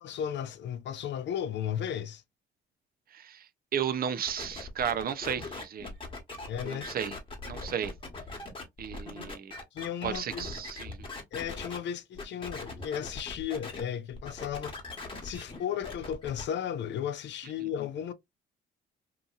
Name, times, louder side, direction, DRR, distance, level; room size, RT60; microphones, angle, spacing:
voice 1, 0.0-2.2 6.5-6.9 9.7-10.4 11.3-14.7 15.2-18.1, left 9 dB, 65° left, 0.5 m, -35 dB
voice 2, 3.1-3.5 3.7-5.9 6.6-7.2 7.5-7.9 8.8-9.5 10.0-11.0, right 8 dB, 50° right, 0.5 m, -33 dB
sound 1, 4.3-11.8 12.2-13.8 14.1-16.4, left 3 dB, 25° left, 1.1 m, -41 dB
2.8 x 2.6 x 2.3 m
cardioid pair, 90°, 20 cm